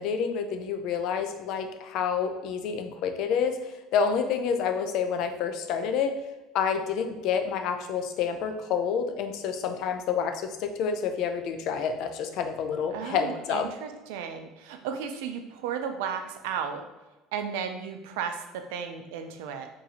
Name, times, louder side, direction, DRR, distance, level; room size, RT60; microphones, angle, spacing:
voice 1, 0.0-3.6 3.9-6.1 6.5-13.6, left 6 dB, 50° left, 6 dB, 0.3 m, -28 dB
voice 2, 12.9-16.8 17.3-19.7, right 7 dB, 85° right, 7 dB, 0.4 m, -34 dB
2.8 x 2.6 x 3.9 m, 1.1 s
cardioid pair, 175°, 0 cm